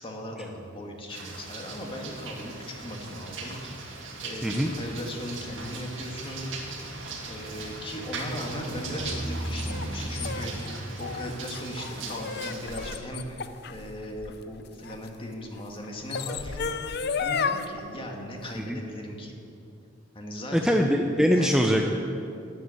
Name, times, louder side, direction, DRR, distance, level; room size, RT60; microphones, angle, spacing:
voice 1, 0.0-3.9 4.2-6.8 7.3-19.3 20.1-20.9 21.3-21.5, equal, 30° left, 1 dB, 1.9 m, -38 dB
sound 1, 1.1-13.0, right 2 dB, 80° right, 2.1 m, -37 dB
sound 2, 8.9-15.1 15.8-17.7, left 6 dB, 60° left, 0.6 m, -33 dB
voice 2, 20.5-21.9, equal, 5° right, 2 dB, 0.6 m, -22 dB
13.0 x 8.0 x 10.0 m, 2.6 s
head